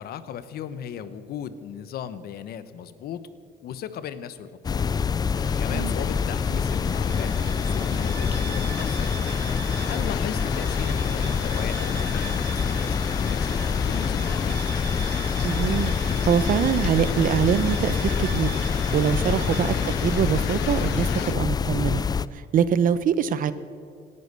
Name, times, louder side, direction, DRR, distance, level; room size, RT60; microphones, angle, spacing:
voice 1, 0.0-3.2 3.6-4.9 5.6-9.1 9.9-14.6 19.6-19.9, left 9 dB, 65° left, 14 dB, 1.0 m, -37 dB
sound 1, 4.6-22.3, left 6 dB, 25° left, 0.4 m, -26 dB
sound 2, 5.3-21.3, left 11 dB, 90° left, 0.9 m, -38 dB
Bowed string instrument, 6.6-20.5, right 10 dB, 70° right, 1.5 m, -41 dB
voice 2, 15.4-15.9 16.3-18.5 18.9-22.0 22.5-23.5, right 8 dB, 55° right, 14 dB, 0.8 m, -24 dB
17.5 x 11.0 x 6.8 m, 2.4 s
cardioid pair, 110°, 17 cm